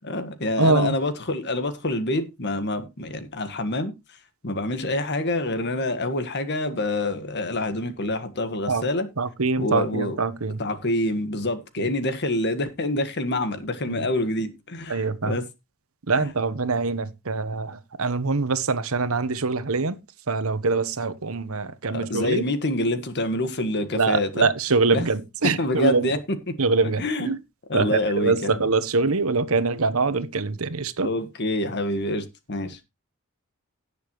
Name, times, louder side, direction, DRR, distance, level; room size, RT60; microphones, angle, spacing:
voice 1, 0.0-3.9 4.4-9.1 9.6-10.2 10.6-15.4 16.2-16.3 21.9-24.5 24.9-25.0 25.6-26.2 26.5-26.6 27.0-27.3 27.7-28.6 31.0-32.8, left 1 dB, 50° left, 1.6 m, -26 dB
voice 2, 0.6-1.0 8.7-8.9 9.2-10.6 11.8-11.9 13.9-14.1 14.9-15.4 16.1-20.0 20.3-22.4 23.9-26.1 26.6-27.4 27.7-31.1, right 4 dB, 70° right, 1.1 m, -24 dB
17.5 x 7.0 x 3.1 m
head